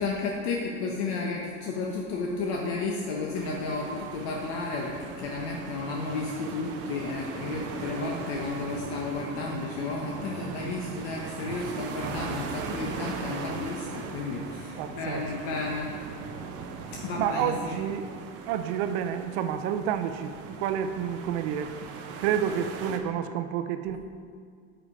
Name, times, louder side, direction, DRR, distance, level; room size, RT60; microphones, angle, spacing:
voice 1, 0.0-15.9 16.9-18.0, left 3 dB, 75° left, -1 dB, 1.0 m, -32 dB
sound 1, 3.3-23.0, right 5 dB, 45° right, 0.7 m, -39 dB
voice 2, 14.8-15.6 17.2-18.1 18.5-24.0, right 9 dB, 85° right, 8 dB, 0.7 m, -30 dB
7.7 x 5.1 x 4.9 m, 2.1 s
cardioid pair, 160°, 32 cm